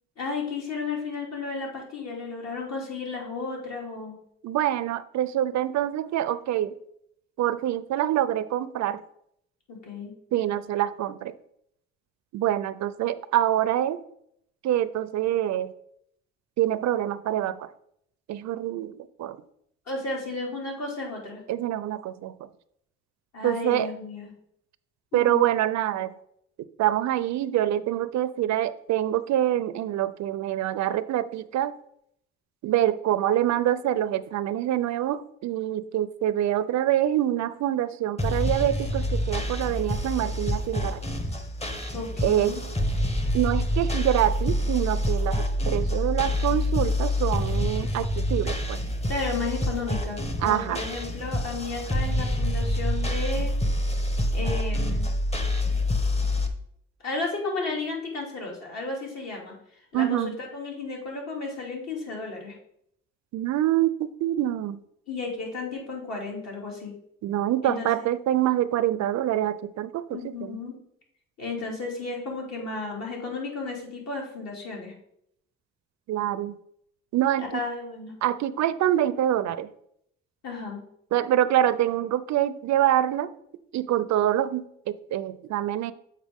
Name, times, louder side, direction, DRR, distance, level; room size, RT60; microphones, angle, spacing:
voice 1, 0.2-4.2 9.7-10.1 19.9-21.4 23.3-24.3 25.1-25.4 41.9-42.6 49.1-53.6 54.3-55.1 57.0-59.5 59.9-62.5 65.1-66.9 67.6-68.0 70.1-70.8 71.4-74.9 77.5-78.1 80.4-80.8, left 3 dB, 60° left, -2 dB, 2.5 m, -33 dB
voice 2, 4.4-6.7 7.4-9.0 10.3-11.3 12.3-14.0 14.6-15.7 16.6-17.7 18.3-19.4 21.5-22.3 23.4-23.9 25.1-26.1 26.8-31.7 32.6-41.0 42.2-42.5 43.3-48.8 50.4-50.8 59.9-60.3 63.3-64.8 67.2-70.6 76.1-76.5 77.1-77.5 78.2-79.7 81.1-83.3 83.7-85.9, right 12 dB, 65° right, 15 dB, 0.5 m, -25 dB
sound 1, 38.2-56.5, left 1 dB, 20° left, 0.9 m, -27 dB
7.4 x 4.5 x 3.5 m, 0.71 s
cardioid pair, 90°, 30 cm